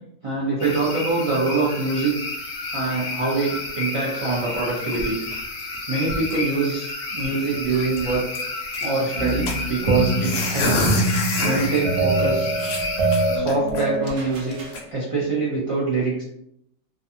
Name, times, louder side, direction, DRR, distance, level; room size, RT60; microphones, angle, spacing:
voice 1, 0.2-2.1 2.7-5.2 5.9-8.2 8.8-10.9 11.4-12.5 13.3-14.6 14.9-16.2, right 3 dB, 45° right, -6 dB, 0.4 m, -24 dB
sound 1, 0.6-13.4, left 3 dB, 85° left, 1.1 m, -31 dB
sound 2, 4.4-5.8 6.0-6.5 6.9-7.0 7.2-7.4 7.7-8.9 9.5-11.8 12.2-12.3 12.6-14.1 14.5-14.8, left 1 dB, 60° left, 0.8 m, -27 dB
sound 3, 9.2-14.8, right 2 dB, 75° right, 1.0 m, -25 dB
2.5 x 2.3 x 2.6 m, 0.77 s
omnidirectional pair, 1.4 m